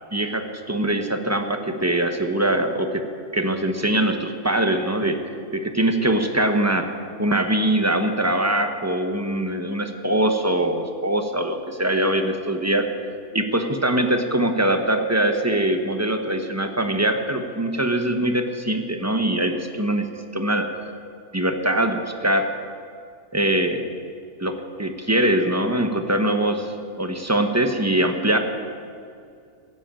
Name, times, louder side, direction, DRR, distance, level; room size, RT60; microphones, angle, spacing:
voice 1, 0.1-3.1 3.3-5.2 5.5-12.9 13.3-20.1 20.3-20.7 21.3-22.5 23.3-23.8 24.4-28.4, right 1 dB, 15° right, 6 dB, 0.8 m, -22 dB
14.5 x 8.2 x 8.8 m, 2.3 s
omnidirectional pair, 1.6 m